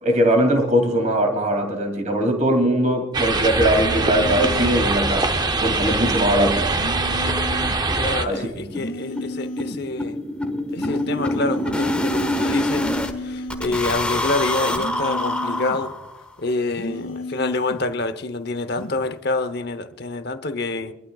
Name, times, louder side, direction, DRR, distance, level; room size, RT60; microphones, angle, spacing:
voice 1, 0.0-5.3 5.6-6.7 7.9-8.7, right 1 dB, 35° right, 2.6 m, -20 dB
sound 1, 3.1-8.3, right 3 dB, 20° right, 0.6 m, -23 dB
sound 2, 3.7-4.9 6.7-7.9 8.7-9.9 10.7-11.9 12.7-13.9 14.7-15.9 16.7-17.9 18.7-19.0, left 1 dB, 80° left, 2.2 m, -33 dB
sound 3, 6.3-6.4 6.7-6.8 7.1-7.2 7.5-7.6 7.9-13.1 13.5-16.3, left 1 dB, 5° left, 1.3 m, -26 dB
voice 2, 8.0-10.2 10.7-12.9 13.2-16.0 16.4-20.9, left 2 dB, 50° left, 0.9 m, -27 dB
25.5 x 12.0 x 2.3 m
head